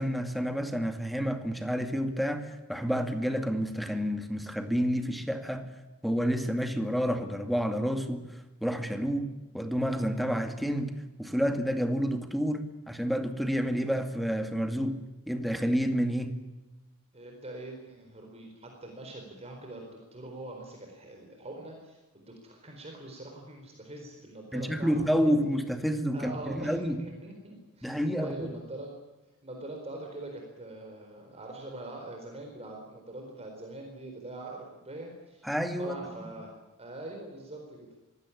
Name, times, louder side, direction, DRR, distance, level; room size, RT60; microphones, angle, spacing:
voice 1, 0.0-5.7 6.0-9.3 9.5-10.9 11.2-15.0 15.3-16.4 24.5-27.0 27.8-28.6 35.4-36.1, equal, ahead, 7 dB, 2.3 m, -29 dB
voice 2, 17.1-25.3 26.1-28.9 29.4-35.5 35.8-38.0, right 2 dB, 30° right, 2 dB, 4.3 m, -43 dB
24.0 x 16.5 x 10.0 m, 1.1 s
head